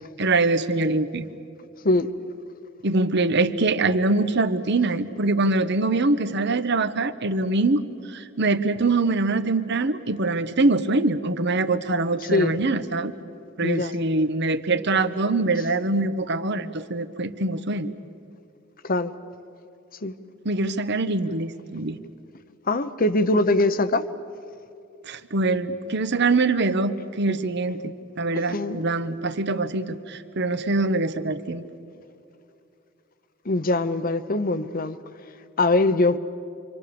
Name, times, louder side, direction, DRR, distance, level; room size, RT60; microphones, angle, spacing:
voice 1, 0.2-1.3 2.8-7.8 8.1-13.1 13.6-17.9 20.4-22.0 25.1-31.6, right 3 dB, 55° right, 1.1 m, -23 dB
voice 2, 13.6-13.9 18.8-19.1 20.0-20.1 22.7-24.0 28.5-28.8 33.5-35.0 35.6-36.2, left 2 dB, 45° left, 0.9 m, -22 dB
29.0 x 25.0 x 7.0 m
head